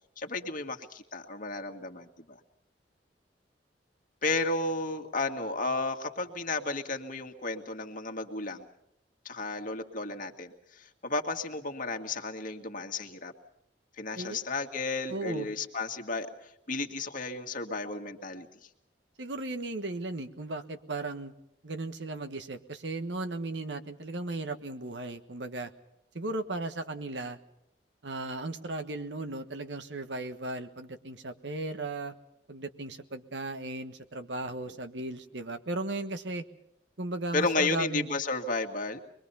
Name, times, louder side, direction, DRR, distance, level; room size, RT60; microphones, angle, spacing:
voice 1, 0.2-2.4 4.2-8.6 9.3-13.3 14.0-18.5 37.3-39.0, left 3 dB, 50° left, 4 dB, 1.9 m, -33 dB
voice 2, 15.1-15.5 19.2-21.3 21.6-25.7 26.1-27.4 28.0-32.1 32.5-36.4 37.0-38.1, right 2 dB, 80° right, 8 dB, 1.5 m, -36 dB
24.5 x 22.0 x 5.6 m, 0.78 s
head